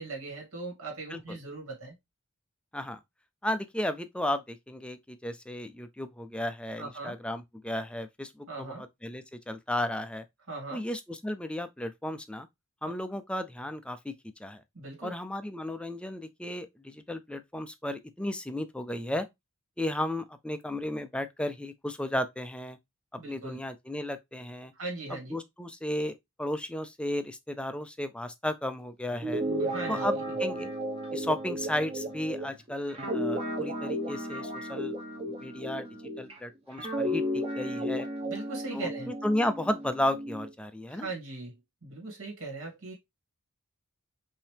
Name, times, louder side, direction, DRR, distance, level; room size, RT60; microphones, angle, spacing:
voice 1, 0.0-2.0 6.8-7.2 8.5-8.8 10.5-10.8 14.7-15.1 23.2-23.6 24.8-25.3 29.4-30.2 38.2-39.1 40.9-41.5 41.8-42.9, right 3 dB, 60° right, 2.3 m, -39 dB
voice 2, 3.4-10.2 10.7-12.5 12.8-14.1 14.4-14.6 15.0-19.3 19.8-22.8 23.1-24.7 25.1-26.1 26.4-29.4 29.9-30.7 31.1-35.9 36.2-38.1 38.7-41.1, left 1 dB, 5° left, 0.4 m, -34 dB
Guitar, 29.1-36.3 36.8-40.5, equal, 25° right, 1.1 m, -33 dB
5.7 x 2.8 x 3.3 m
head